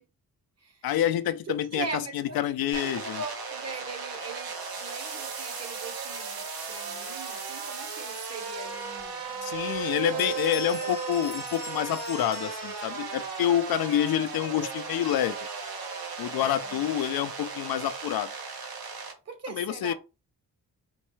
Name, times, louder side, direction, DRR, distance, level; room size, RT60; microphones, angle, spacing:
voice 1, 0.8-3.2 9.4-15.4 16.2-18.3 19.5-19.9, left 11 dB, 75° left, 0.5 m, -28 dB
voice 2, 1.5-2.4 2.6-9.8 10.1-10.4 10.8-10.9 16.4-16.9 19.3-19.9, right 4 dB, 45° right, 1.0 m, -40 dB
sound 1, 2.7-19.1, right 5 dB, 80° right, 1.3 m, -36 dB
Bell, 9.0-9.1 9.5-9.8 10.0-13.2, left 6 dB, 25° left, 0.6 m, -43 dB
4.3 x 3.1 x 3.1 m
wide cardioid pair, 125°, 36 cm